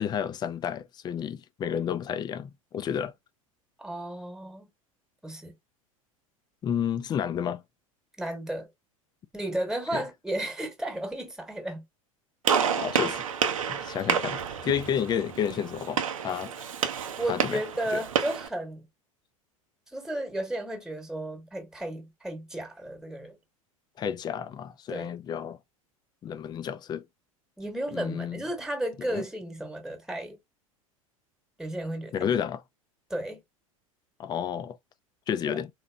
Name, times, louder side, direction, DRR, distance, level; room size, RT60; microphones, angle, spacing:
voice 1, 0.0-3.1 6.6-7.6 9.9-10.0 12.8-13.2 13.6-16.5 17.3-17.6 17.9-18.0 24.0-25.6 26.2-27.0 27.9-28.4 29.1-29.2 32.1-32.6 34.2-34.8 35.3-35.7, left 8 dB, 25° left, 0.4 m, -31 dB
voice 2, 3.8-4.7 5.2-5.5 8.2-8.7 9.3-11.8 17.1-18.9 19.9-23.4 24.9-25.1 27.6-30.4 31.6-32.3 33.1-33.4 35.5-35.6, right 1 dB, 5° right, 1.3 m, -33 dB
Gunshot gunfire, 12.4-18.5, right 7 dB, 70° right, 0.7 m, -29 dB
4.0 x 3.0 x 2.3 m
figure-of-eight pair, 80°, 18 cm